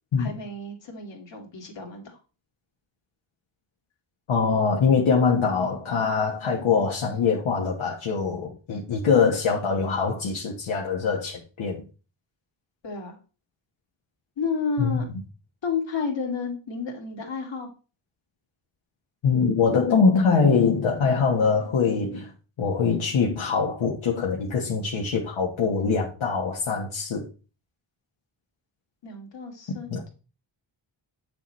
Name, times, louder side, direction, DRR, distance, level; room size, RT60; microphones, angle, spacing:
voice 1, 0.2-2.2 12.8-13.2 14.4-15.1 15.6-17.7 29.0-30.1, left 5 dB, 65° left, 2.3 m, -31 dB
voice 2, 4.3-11.8 14.8-15.0 19.2-22.3 22.6-27.3 29.9-30.0, left 5 dB, 85° left, 1.4 m, -23 dB
8.4 x 6.8 x 3.2 m
wide cardioid pair, 145°, 47 cm